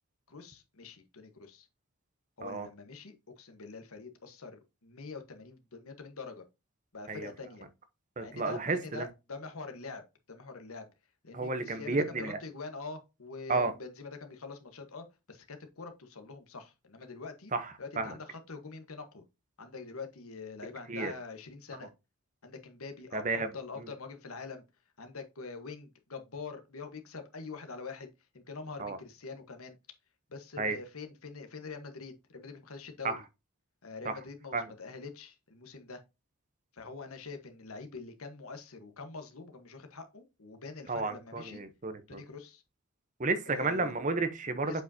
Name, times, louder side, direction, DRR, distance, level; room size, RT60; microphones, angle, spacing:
voice 1, 0.3-1.7 2.4-6.4 6.9-7.6 8.2-10.0 10.3-10.9 11.2-17.5 17.8-19.2 19.6-21.9 22.4-24.6 25.0-29.8 30.3-33.1 33.8-36.0 36.7-41.6 42.1-42.6 43.5-43.9 44.6-44.8, left 4 dB, 80° left, 1.3 m, -45 dB
voice 2, 8.2-9.1 11.3-12.4 13.5-13.7 17.5-18.1 20.9-21.1 23.1-23.5 28.8-29.0 30.6-30.8 33.0-33.2 34.0-34.1 34.5-34.6 40.9-42.2 43.2-44.8, right 3 dB, 35° right, 0.9 m, -32 dB
7.8 x 5.2 x 2.8 m
head